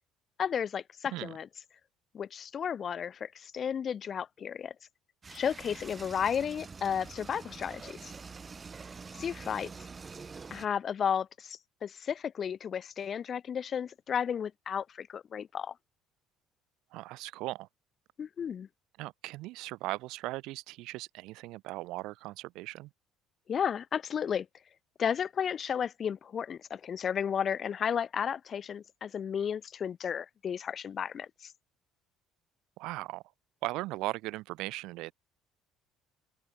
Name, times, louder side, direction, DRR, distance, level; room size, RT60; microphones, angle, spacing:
voice 1, 0.4-1.5 2.1-4.7 5.3-8.1 9.1-9.7 10.5-15.7 18.2-18.7 23.5-24.5 25.0-31.5, left 8 dB, 35° left, 0.4 m, -33 dB
sound 1, 5.2-10.7, right 5 dB, 20° right, 3.7 m, -46 dB
voice 2, 16.9-17.7 19.0-22.9 32.8-33.2 33.6-35.1, right 19 dB, 75° right, 1.3 m, -38 dB
open air
cardioid pair, 150°, 0 cm